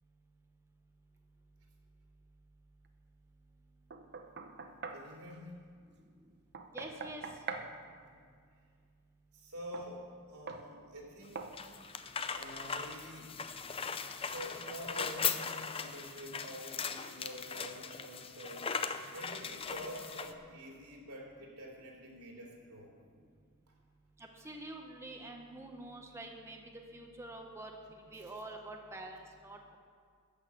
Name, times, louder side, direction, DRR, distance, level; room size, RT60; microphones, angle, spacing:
Knock, 3.9-5.1 6.5-7.7 9.7-9.9 10.5-10.7 11.4-11.6, right 4 dB, 50° right, 0.8 m, -43 dB
voice 1, 4.6-5.7 8.0-8.2 9.3-11.5 12.3-13.3 14.1-18.8 19.1-22.9 23.7-23.8 27.9-28.4, equal, 80° right, -1 dB, 2.9 m, -48 dB
voice 2, 6.7-7.2 24.4-26.6 26.9-29.8, right 2 dB, 10° right, 2 dB, 0.8 m, -46 dB
sound 1, 11.2-20.3, left 6 dB, 25° left, 0.5 m, -39 dB
13.5 x 6.5 x 8.2 m, 2.1 s
head